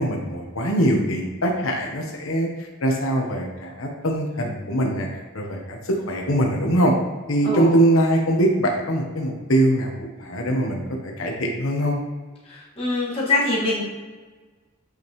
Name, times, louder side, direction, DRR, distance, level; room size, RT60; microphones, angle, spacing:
voice 1, 0.0-5.1 5.3-6.9 7.3-9.9 10.2-12.0, right 1 dB, 85° left, 0 dB, 1.1 m, -22 dB
voice 2, 7.4-7.8 12.5-13.8, left 2 dB, 25° left, -7 dB, 2.0 m, -23 dB
8.2 x 5.2 x 3.2 m, 1.4 s
head